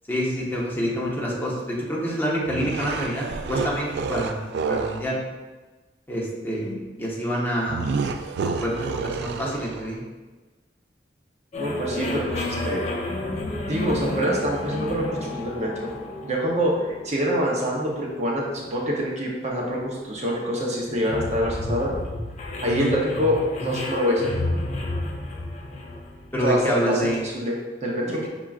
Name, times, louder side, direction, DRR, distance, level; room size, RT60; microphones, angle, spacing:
voice 1, 0.1-5.2 6.1-8.1 8.4-10.0 22.6-22.9 26.3-27.3 28.0-28.3, equal, 10° left, -5 dB, 0.9 m, -27 dB
sound 1, 2.5-5.1 7.7-10.0, right 5 dB, 70° right, 0.3 m, -29 dB
sound 2, 11.5-26.9, left 1 dB, 40° left, 0.5 m, -32 dB
voice 2, 11.6-12.8 13.7-15.9 16.2-21.9 22.6-24.3 26.4-28.2, equal, 40° right, -2 dB, 0.7 m, -25 dB
5.7 x 3.6 x 2.4 m, 1.2 s
head